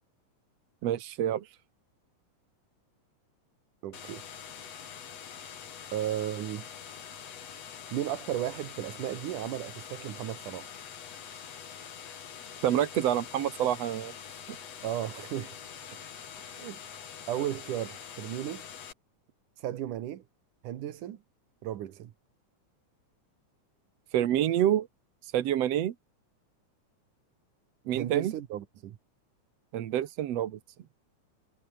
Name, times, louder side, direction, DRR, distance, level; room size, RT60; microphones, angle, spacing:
voice 1, 0.8-1.5 12.6-14.1 14.5-14.6 24.1-24.9 25.2-25.9 27.9-28.3 29.7-30.6, right 11 dB, 60° right, 2.1 m, -27 dB
voice 2, 3.8-4.2 5.9-6.7 7.9-10.7 14.8-15.6 16.4-16.8 17.3-18.6 19.6-20.2 20.6-21.2 21.6-22.1 27.9-29.0, right 12 dB, 85° right, 3.0 m, -35 dB
sound 1, 3.9-18.9, left 8 dB, 60° left, 3.3 m, -45 dB
omnidirectional pair, 3.5 m